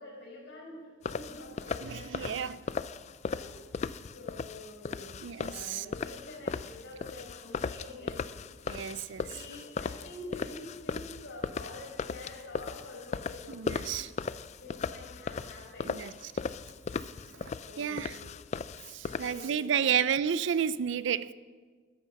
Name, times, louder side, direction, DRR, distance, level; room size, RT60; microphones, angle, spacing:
voice 1, 0.0-2.3 2.6-2.7 3.3-3.6 4.1-5.1 5.4-8.3 9.2-14.1 14.6-16.0 17.6-18.1 19.0-20.0, left 2 dB, 60° left, 5.1 m, -47 dB
sound 1, 1.0-19.5, left 5 dB, 35° left, 0.3 m, -37 dB
voice 2, 1.8-2.6 5.2-5.9 8.7-9.3 13.5-14.1 15.9-16.1 17.4-18.1 18.9-21.3, right 8 dB, 65° right, 0.4 m, -31 dB
13.5 x 9.6 x 5.9 m
head